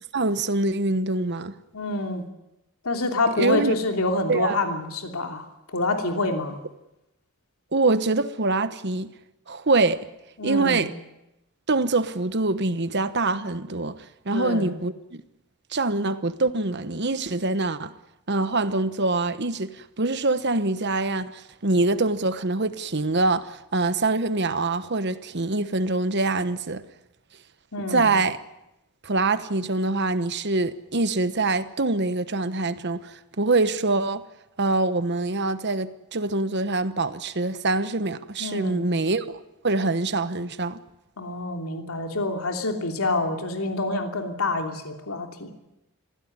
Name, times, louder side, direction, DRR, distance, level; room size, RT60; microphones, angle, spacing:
voice 1, 0.1-1.5 3.4-3.7 4.3-4.6 7.7-9.1 9.5-10.1 10.4-10.9 11.7-15.2 15.7-17.9 18.3-26.8 27.9-28.4 29.0-34.2 34.6-40.8, right 3 dB, 50° right, 1.1 m, -24 dB
voice 2, 1.7-2.2 2.8-6.6 10.4-10.9 14.3-14.7 27.7-28.1 38.4-38.8 41.2-45.5, left 2 dB, 75° left, 3.0 m, -27 dB
23.0 x 16.5 x 9.6 m
head